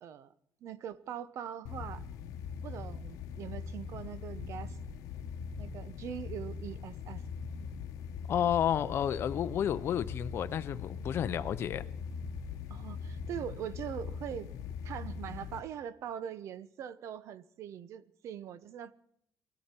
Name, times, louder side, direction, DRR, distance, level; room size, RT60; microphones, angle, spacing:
voice 1, 0.6-2.0 2.6-4.8 5.6-7.2 12.7-14.5 14.8-18.9, right 9 dB, 60° right, 0.8 m, -42 dB
sound 1, 1.6-15.6, left 6 dB, 85° left, 0.9 m, -41 dB
voice 2, 8.3-11.9, left 9 dB, 45° left, 0.6 m, -31 dB
21.0 x 14.0 x 4.4 m
cardioid pair, 150°, 6 cm